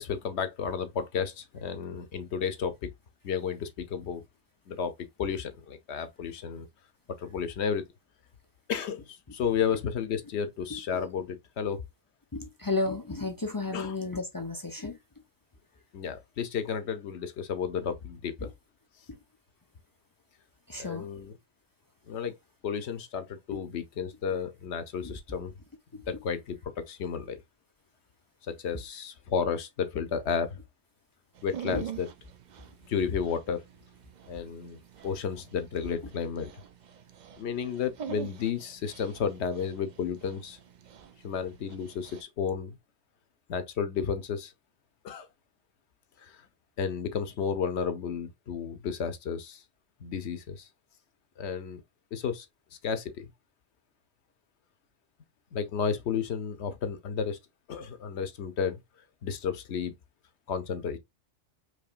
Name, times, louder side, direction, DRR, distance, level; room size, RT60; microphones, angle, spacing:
voice 1, 0.0-2.9 3.2-4.2 4.7-4.9 5.2-6.7 7.2-7.8 8.7-11.8 13.7-13.9 15.9-18.5 20.8-21.3 22.1-22.3 22.6-25.5 26.1-27.4 28.5-30.6 31.4-32.1 32.9-33.6 34.3-36.5 37.4-40.6 41.2-42.8 43.5-44.5 45.0-45.3 46.2-46.4 46.8-49.6 50.0-50.7 51.4-51.8 52.1-52.5 52.8-53.3 55.5-57.4 57.7-58.8 59.2-59.9 60.5-61.0, left 6 dB, 70° left, 1.0 m, -32 dB
voice 2, 12.3-15.0 18.4-18.5 19.1-19.2 20.7-21.1 23.5-23.6 25.0-25.1 25.9-26.2 31.7-31.8, left 3 dB, 35° left, 0.3 m, -33 dB
Dog, 31.4-42.2, right 9 dB, 55° right, 0.5 m, -45 dB
4.9 x 3.0 x 2.4 m
omnidirectional pair, 1.2 m